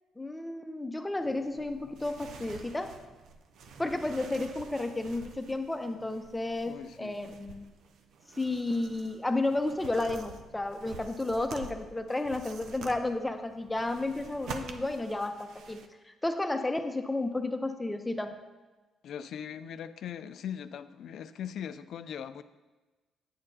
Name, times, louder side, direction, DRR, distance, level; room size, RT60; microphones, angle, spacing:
voice 1, 0.2-3.0 3.8-7.7 8.4-18.4, left 2 dB, 10° left, 6 dB, 0.7 m, -32 dB
sound 1, 1.2-15.9, right 5 dB, 75° right, 0.6 m, -48 dB
voice 2, 6.7-7.2 19.0-22.4, left 8 dB, 70° left, 12 dB, 0.4 m, -40 dB
8.7 x 8.6 x 2.7 m, 1.2 s
cardioid pair, 90°, 0 cm